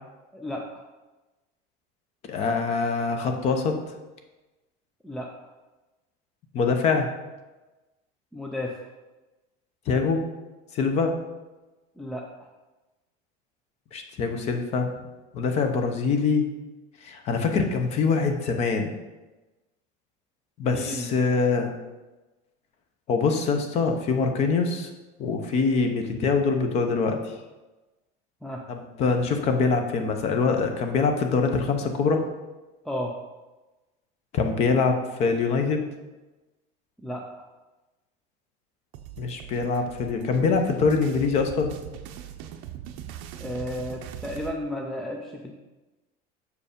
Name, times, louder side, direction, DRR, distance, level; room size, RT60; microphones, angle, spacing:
voice 1, 0.3-0.6 5.0-5.3 8.3-8.7 12.0-12.2 20.7-21.1 28.4-28.6 32.8-33.1 37.0-37.2 43.4-45.5, left 1 dB, ahead, 0 dB, 0.3 m, -33 dB
voice 2, 2.3-3.8 6.5-7.1 9.9-10.2 10.7-11.2 13.9-14.9 15.3-16.5 17.0-18.9 20.6-21.7 23.1-24.9 25.2-27.3 28.7-32.2 34.3-35.8 39.2-41.7, left 4 dB, 30° left, 5 dB, 0.7 m, -24 dB
sound 1, 38.9-44.6, right 10 dB, 60° right, 0.6 m, -40 dB
6.7 x 4.8 x 5.1 m, 1.1 s
cardioid pair, 180°, 20 cm